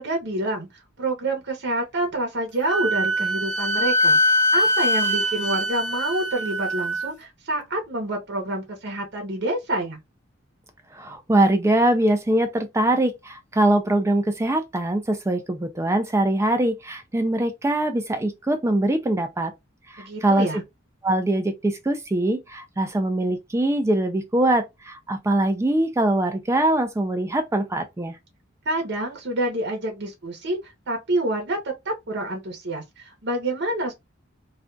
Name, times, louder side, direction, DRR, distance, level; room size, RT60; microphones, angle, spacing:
voice 1, 0.0-4.2 4.5-10.0 20.0-20.6 28.7-31.6 31.8-33.9, right 1 dB, 60° right, 0.8 m, -27 dB
Wind instrument woodwind instrument, 2.6-7.1, left 1 dB, 40° left, 0.7 m, -22 dB
voice 2, 10.9-19.5 19.9-20.6 21.0-28.2, right 1 dB, 15° right, 0.4 m, -22 dB
2.4 x 2.2 x 3.7 m
head